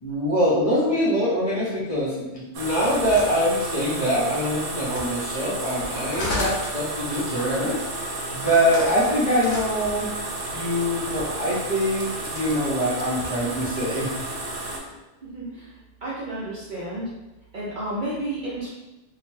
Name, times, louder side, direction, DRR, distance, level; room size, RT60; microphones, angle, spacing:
voice 1, 0.0-10.1 10.5-14.1, equal, 35° left, -9 dB, 0.7 m, -24 dB
sound 1, 2.5-14.8, right 2 dB, 80° right, 0.9 m, -32 dB
sound 2, 2.6-4.2 4.8-11.5 12.2-12.6 13.0-15.0, left 2 dB, 70° left, 0.9 m, -37 dB
voice 2, 15.2-17.1 17.5-18.7, right 1 dB, 55° right, -7 dB, 0.6 m, -32 dB
2.7 x 2.1 x 3.1 m, 1.0 s
omnidirectional pair, 1.3 m